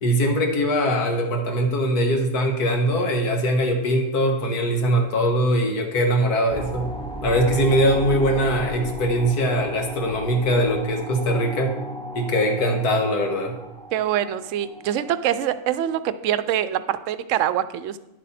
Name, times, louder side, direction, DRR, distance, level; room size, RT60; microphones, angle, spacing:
voice 1, 0.0-6.9 7.2-11.8 12.1-13.5, equal, 90° left, 3 dB, 1.9 m, -21 dB
sound 1, 6.5-15.8, right 1 dB, 5° left, 0.6 m, -35 dB
voice 2, 13.9-18.0, right 11 dB, 70° right, 13 dB, 0.8 m, -24 dB
10.5 x 7.8 x 4.2 m, 0.97 s
omnidirectional pair, 1.6 m